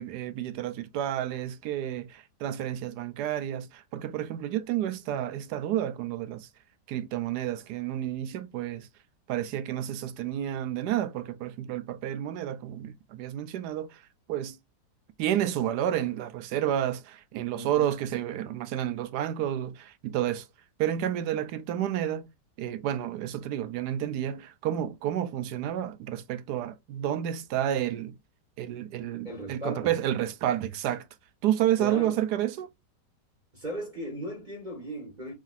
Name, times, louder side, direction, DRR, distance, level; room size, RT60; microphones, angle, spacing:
voice 1, 0.0-6.5 6.9-8.9 9.3-14.0 14.3-14.6 15.2-20.5 20.8-22.3 22.6-28.2 28.6-31.1 31.4-32.7, right 11 dB, 75° right, 1.2 m, -30 dB
voice 2, 17.5-17.9 29.2-29.9 31.8-32.2 33.5-35.3, equal, 25° right, 1.9 m, -37 dB
4.7 x 3.7 x 2.6 m
omnidirectional pair, 1.8 m